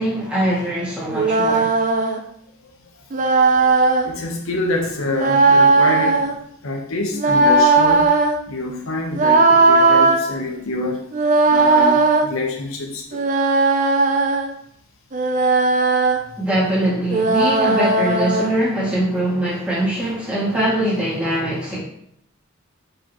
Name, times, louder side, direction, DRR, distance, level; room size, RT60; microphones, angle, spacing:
voice 1, 0.0-1.7 16.4-21.8, right 1 dB, 5° right, -8 dB, 2.1 m, -22 dB
sound 1, 1.1-2.2 3.1-4.1 5.1-6.3 7.1-8.4 9.1-10.2 11.1-12.3 13.1-14.5 15.1-16.2 17.1-18.5, right 3 dB, 35° right, 0.5 m, -16 dB
voice 2, 4.0-6.3 6.6-8.1 8.5-13.2, left 2 dB, 70° left, 1 dB, 1.0 m, -26 dB
6.5 x 4.9 x 3.0 m, 0.69 s
head